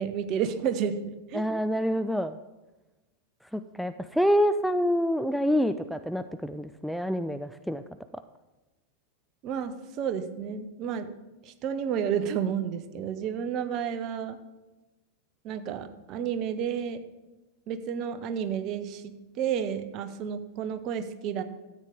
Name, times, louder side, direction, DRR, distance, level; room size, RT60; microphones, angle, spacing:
voice 1, 0.0-1.5 9.4-11.1 11.4-14.4 15.4-17.0 17.7-21.4, right 8 dB, 40° right, 10 dB, 0.8 m, -31 dB
voice 2, 1.3-2.4 3.5-7.8, equal, ahead, 9 dB, 0.3 m, -27 dB
13.5 x 8.1 x 3.5 m, 1.1 s
figure-of-eight pair, 90°, 0 cm